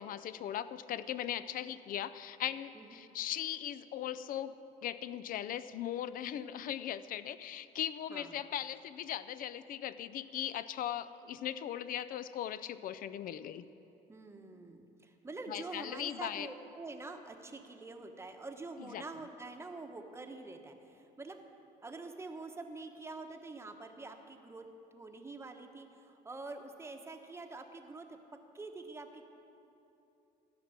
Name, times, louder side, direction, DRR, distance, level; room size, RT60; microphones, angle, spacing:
voice 1, 0.0-4.5 4.8-13.7 15.5-16.5 18.8-19.0, left 11 dB, 55° left, 15 dB, 0.5 m, -39 dB
voice 2, 2.7-3.1 8.1-8.3 14.1-21.4 21.8-28.2 28.5-29.3, right 3 dB, 15° right, 5 dB, 1.0 m, -46 dB
13.0 x 6.0 x 8.7 m, 2.9 s
cardioid pair, 110°, 17 cm